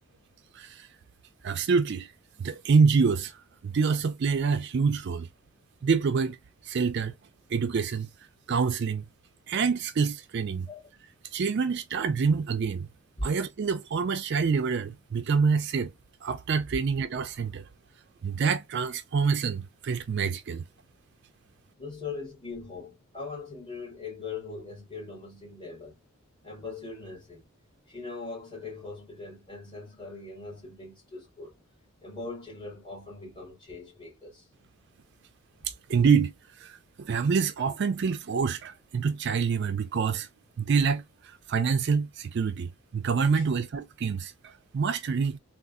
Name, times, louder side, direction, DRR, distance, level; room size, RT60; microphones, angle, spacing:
voice 1, 0.5-0.9 1.4-2.1 2.4-3.4 3.6-5.3 5.8-6.4 6.6-7.1 7.5-8.1 8.5-9.0 9.5-10.7 11.3-12.9 13.2-15.9 16.2-17.7 18.2-20.7 35.6-40.3 40.6-45.4, right 5 dB, 50° right, 0.4 m, -26 dB
voice 2, 21.8-26.0 26.4-27.5 27.9-31.6 32.0-34.5 43.3-43.5, left 3 dB, 25° left, 1.8 m, -40 dB
3.6 x 2.4 x 2.3 m
head